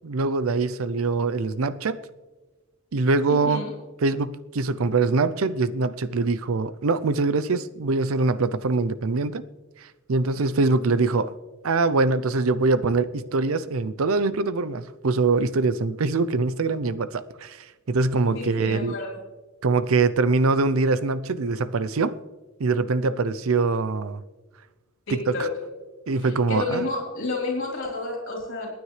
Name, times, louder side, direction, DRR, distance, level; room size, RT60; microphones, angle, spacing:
voice 1, 0.0-2.0 2.9-3.6 4.0-9.4 9.8-11.3 11.6-19.0 19.6-22.2 22.6-24.2 25.1-25.5 26.1-26.9, right 3 dB, 85° right, 0.6 m, -23 dB
voice 2, 3.3-3.7 18.3-19.2 25.1-25.5 26.2-28.7, left 2 dB, 65° left, 3.9 m, -30 dB
28.0 x 9.4 x 3.3 m
head